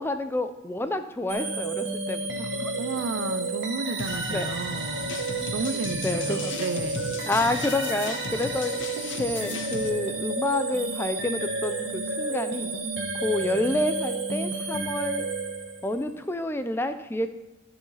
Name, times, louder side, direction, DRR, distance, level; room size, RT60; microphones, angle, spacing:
voice 1, 0.0-2.7 4.3-4.5 6.0-6.5 7.2-8.7 9.2-12.7 13.2-15.3 15.8-17.4, left 2 dB, 10° left, 9 dB, 0.4 m, -29 dB
sound 1, 1.3-16.0, right 2 dB, 65° right, 1.3 m, -31 dB
voice 2, 2.8-5.1 5.5-7.2, right 4 dB, 85° right, 11 dB, 0.6 m, -32 dB
sound 2, 4.0-9.9, left 4 dB, 70° left, 0.9 m, -37 dB
13.5 x 4.9 x 4.0 m, 1.0 s
head